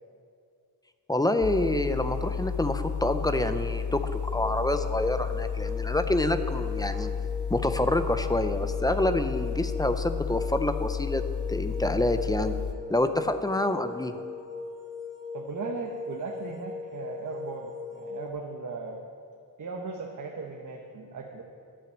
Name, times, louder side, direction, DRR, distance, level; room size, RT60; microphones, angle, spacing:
voice 1, 1.1-7.1 7.5-11.2 11.5-12.5 12.9-14.1, left 1 dB, 10° left, 8 dB, 0.4 m, -27 dB
sound 1, 1.4-12.7, left 6 dB, 45° left, 0.7 m, -32 dB
sound 2, 4.1-18.3, left 5 dB, 30° right, 2.1 m, -40 dB
voice 2, 15.3-19.0 19.6-21.4, right 4 dB, 50° right, 1 dB, 0.9 m, -37 dB
12.5 x 5.9 x 7.2 m, 2.3 s
wide cardioid pair, 175°, 41 cm